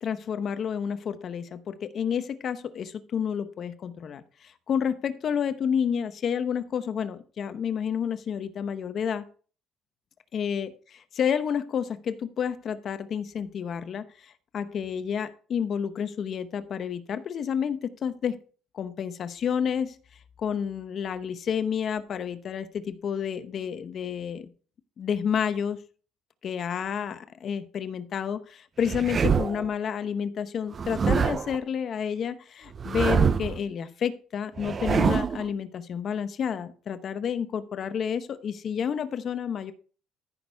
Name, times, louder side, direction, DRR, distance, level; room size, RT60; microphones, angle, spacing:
voice 1, 0.0-4.2 4.7-9.2 10.3-14.1 14.5-18.4 18.7-20.0 20.4-24.5 25.0-25.8 26.4-39.7, left 7 dB, 45° left, 12 dB, 0.8 m, -30 dB
sound 1, 28.8-29.7 30.7-31.6 32.8-33.6 34.6-35.5, right 6 dB, 35° right, 0.5 m, -25 dB
14.0 x 6.2 x 3.4 m, 0.41 s
cardioid pair, 125°, 0 cm